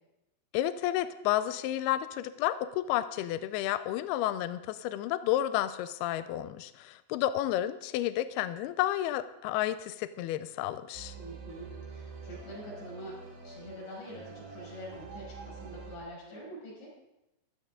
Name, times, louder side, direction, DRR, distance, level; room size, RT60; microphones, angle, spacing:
voice 1, 0.5-11.2, left 13 dB, 85° left, 12 dB, 2.3 m, -31 dB
sound 1, 10.9-16.0, right 4 dB, 80° right, 4.4 m, -46 dB
voice 2, 11.1-13.2 13.4-16.9, equal, 65° left, -5 dB, 7.9 m, -45 dB
15.5 x 12.0 x 3.7 m, 0.89 s
omnidirectional pair, 5.1 m